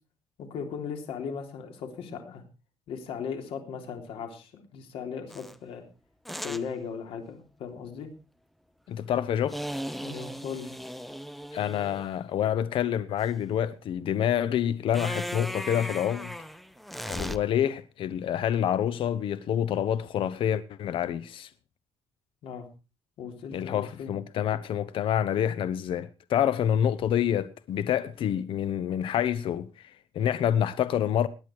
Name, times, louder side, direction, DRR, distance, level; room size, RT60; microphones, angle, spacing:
voice 1, 0.4-2.4 2.9-5.9 6.4-8.1 10.0-10.7 22.4-22.7 23.2-24.1, left 6 dB, 85° left, 3.5 m, -37 dB
sound 1, 5.3-5.5 6.3-6.7 9.5-12.1 14.9-17.4, equal, ahead, 0.8 m, -37 dB
voice 2, 8.9-9.6 11.5-16.3 17.1-21.5 23.5-31.3, left 10 dB, 70° left, 0.8 m, -27 dB
19.0 x 10.0 x 4.7 m
cardioid pair, 125°, 9 cm